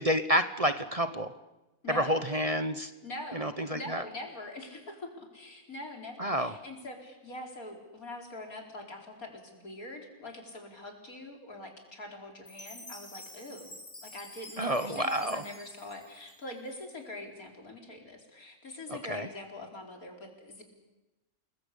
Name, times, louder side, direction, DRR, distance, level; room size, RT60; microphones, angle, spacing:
voice 1, 0.0-1.3 1.9-2.9 3.3-4.0 6.2-6.5 14.6-15.4 18.9-19.3, equal, 30° right, 11 dB, 0.9 m, -29 dB
voice 2, 1.8-2.2 3.0-20.6, left 2 dB, 65° left, 2 dB, 4.7 m, -44 dB
Chime, 12.5-16.8, left 1 dB, 20° left, 3.4 m, -49 dB
28.5 x 21.0 x 8.4 m, 1.1 s
omnidirectional pair, 1.6 m